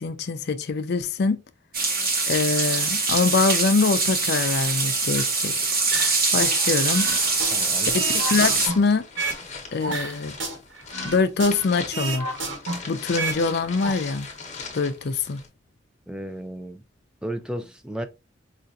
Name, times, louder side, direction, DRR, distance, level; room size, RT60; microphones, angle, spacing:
voice 1, 0.0-1.4 2.3-5.5 6.3-7.1 7.9-9.0 9.7-10.4 11.0-12.3 12.9-14.3 14.7-15.4, left 4 dB, 60° left, 0.5 m, -24 dB
sound 1, 1.7-8.7, right 3 dB, 50° right, 1.0 m, -23 dB
sound 2, 5.9-6.6 6.9-9.4 9.8-11.7 11.9-13.4 13.7-13.9, right 3 dB, 80° right, 1.4 m, -31 dB
sound 3, 6.9-15.5, left 5 dB, 40° left, 0.9 m, -39 dB
voice 2, 7.5-7.9 16.1-16.8 17.2-18.1, right 1 dB, 5° right, 0.4 m, -33 dB
4.9 x 2.5 x 2.6 m
head